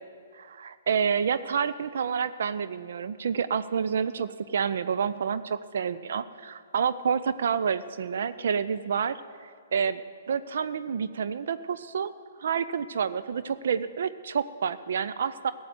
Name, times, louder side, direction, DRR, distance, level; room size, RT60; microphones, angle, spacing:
voice 1, 0.3-10.0 10.3-12.1 12.4-15.5, right 6 dB, 60° right, 12 dB, 0.5 m, -29 dB
15.5 x 7.8 x 9.5 m, 2.1 s
figure-of-eight pair, 120°, 0 cm